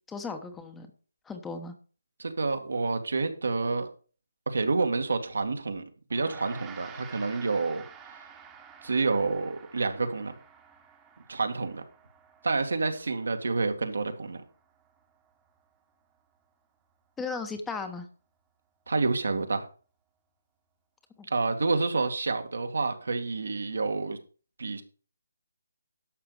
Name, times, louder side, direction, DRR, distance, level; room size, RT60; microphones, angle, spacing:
voice 1, 0.1-0.9 1.2-1.7 17.2-18.1 21.2-21.3, left 4 dB, 5° left, 6 dB, 1.0 m, -36 dB
voice 2, 2.2-3.9 4.5-5.8 6.1-7.8 8.8-10.3 11.3-11.8 12.4-14.4 18.9-19.7 21.3-24.2 24.6-24.8, right 3 dB, 75° right, 6 dB, 2.1 m, -28 dB
Gong, 6.1-15.6, right 7 dB, 15° right, 1.3 m, -51 dB
11.5 x 6.8 x 4.9 m, 0.38 s
figure-of-eight pair, 155°, 0 cm